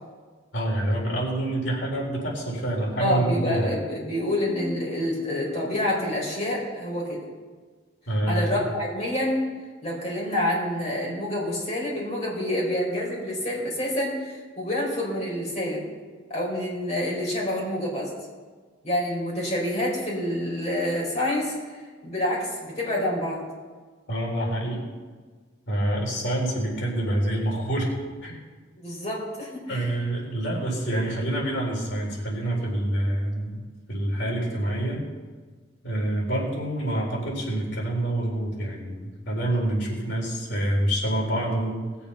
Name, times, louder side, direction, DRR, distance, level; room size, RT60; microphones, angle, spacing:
voice 1, 0.5-3.7 8.1-8.5 24.1-24.8 25.7-27.9 28.2-28.4 29.7-33.6 33.9-35.0 35.8-41.8, right 1 dB, 70° left, -2 dB, 4.0 m, -27 dB
voice 2, 3.0-7.2 8.3-9.4 9.8-15.8 16.3-18.1 18.8-23.4 28.8-29.9, left 1 dB, 35° left, -3 dB, 4.4 m, -27 dB
19.5 x 7.0 x 5.8 m, 1.4 s
head